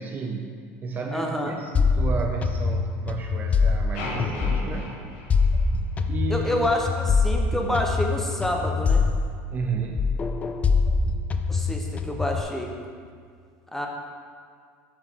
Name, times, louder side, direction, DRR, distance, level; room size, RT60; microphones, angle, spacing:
voice 1, 0.0-4.9 6.1-6.5 9.5-10.3, right 4 dB, 30° right, 3 dB, 0.5 m, -32 dB
voice 2, 1.1-1.6 6.3-9.0 11.5-12.7 13.7-13.9, left 1 dB, 5° left, 1 dB, 0.9 m, -27 dB
sound 1, 1.7-4.8 5.3-9.7 10.0-12.4, left 4 dB, 25° left, 0.4 m, -24 dB
sound 2, 3.9-6.2, left 2 dB, 90° left, 1.7 m, -36 dB
8.0 x 7.5 x 3.7 m, 2.1 s
cardioid pair, 135°, 6 cm